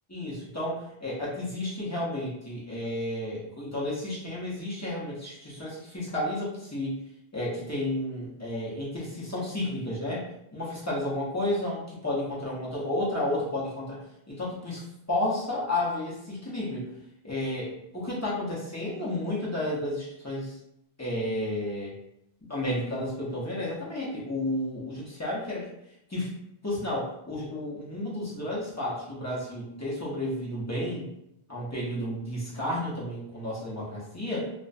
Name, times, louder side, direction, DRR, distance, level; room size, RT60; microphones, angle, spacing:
voice 1, 0.1-7.0 7.3-10.2 10.5-14.0 14.3-16.9 17.2-20.6 21.0-21.9 22.5-25.7 26.1-26.3 26.6-31.1 31.5-34.4, left 1 dB, 20° left, -7 dB, 0.5 m, -32 dB
2.4 x 2.1 x 2.5 m, 0.79 s
omnidirectional pair, 1.0 m